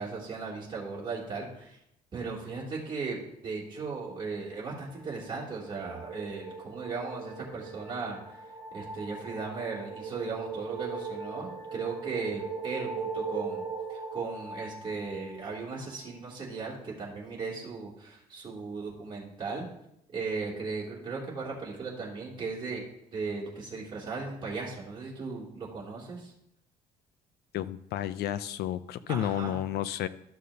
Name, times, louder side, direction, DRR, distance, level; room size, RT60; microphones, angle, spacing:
voice 1, 0.0-1.8 2.1-8.4 8.7-13.6 13.9-19.7 20.1-22.8 23.1-26.3 29.1-29.6, right 4 dB, 25° right, -6 dB, 3.0 m, -37 dB
sound 1, 4.5-15.9, right 5 dB, 50° right, 2.0 m, -40 dB
voice 2, 27.5-30.1, left 12 dB, 70° left, 14 dB, 0.5 m, -31 dB
13.0 x 6.4 x 2.8 m, 0.77 s
cardioid pair, 110°, 17 cm